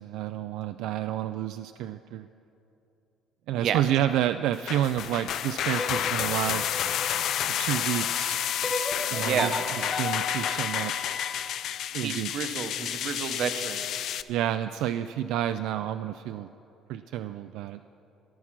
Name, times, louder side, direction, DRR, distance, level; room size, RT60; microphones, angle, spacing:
voice 1, 0.0-2.3 3.5-6.7 7.4-8.4 9.1-11.2 11.9-12.3 14.3-16.5 16.9-17.8, right 12 dB, 75° right, 9 dB, 0.3 m, -30 dB
sound 1, 4.5-14.2, left 10 dB, 55° left, 0.4 m, -30 dB
sound 2, 5.8-7.9 8.6-11.7, left 2 dB, 15° left, 0.7 m, -36 dB
Wind instrument woodwind instrument, 6.4-11.4, left 5 dB, 35° left, 1.5 m, -41 dB
voice 2, 9.1-9.5 12.0-13.9, right 8 dB, 50° right, 9 dB, 0.8 m, -30 dB
14.0 x 11.0 x 5.9 m, 2.8 s
cardioid pair, 160°, 0 cm